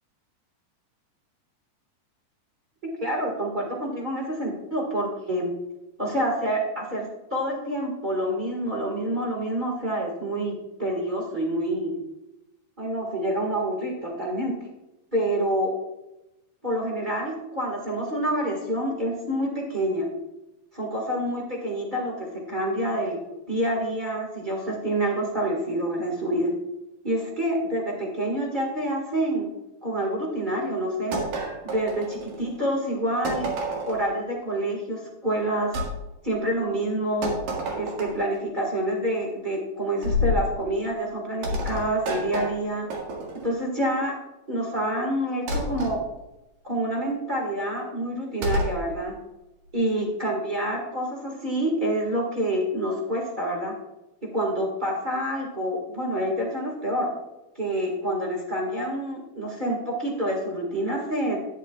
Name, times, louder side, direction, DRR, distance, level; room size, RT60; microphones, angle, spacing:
voice 1, 3.0-5.5 6.0-11.9 12.8-14.6 15.1-15.7 16.6-20.1 20.7-23.2 23.5-26.5 27.0-29.5 29.8-31.2 31.6-33.5 33.9-35.8 36.2-37.3 37.7-42.9 43.4-44.2 44.5-46.0 46.6-49.2 49.7-53.7 54.2-57.1 57.5-61.4, right 1 dB, 45° right, -1 dB, 0.6 m, -27 dB
sound 1, 31.1-32.5 33.3-34.1 35.7-35.9 37.2-38.3 40.0-40.5 41.4-43.5 45.5-46.0 48.4-48.8, left 1 dB, 75° right, 3.4 m, -29 dB
11.0 x 11.0 x 2.4 m, 0.97 s
omnidirectional pair, 4.1 m